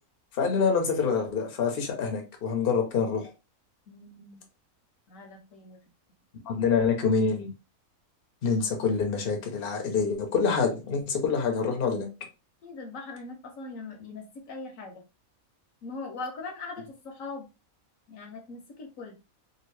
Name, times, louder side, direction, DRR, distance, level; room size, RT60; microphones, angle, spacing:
voice 1, 0.4-3.3 6.5-7.5 8.4-12.1, left 5 dB, 50° left, 0.8 m, -26 dB
voice 2, 3.9-4.4 5.1-5.8 12.6-15.0 15.8-17.5 18.1-19.2, left 3 dB, 70° left, 1.1 m, -41 dB
2.8 x 2.5 x 3.1 m
omnidirectional pair, 1.5 m